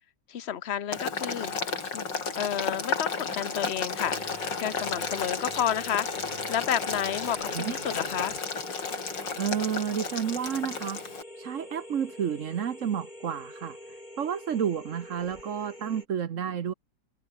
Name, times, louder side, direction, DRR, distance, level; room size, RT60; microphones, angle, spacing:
voice 1, 0.3-1.5 1.9-2.0 2.4-6.1 6.5-8.4, left 10 dB, 45° left, 1.1 m, -31 dB
Boiling, 0.9-11.2, left 4 dB, 80° left, 3.8 m, -33 dB
sound 1, 3.9-16.1, left 1 dB, 25° left, 7.5 m, -45 dB
voice 2, 9.4-11.0 11.4-13.8 14.2-16.7, right 8 dB, 50° right, 1.1 m, -30 dB
omnidirectional pair, 1.9 m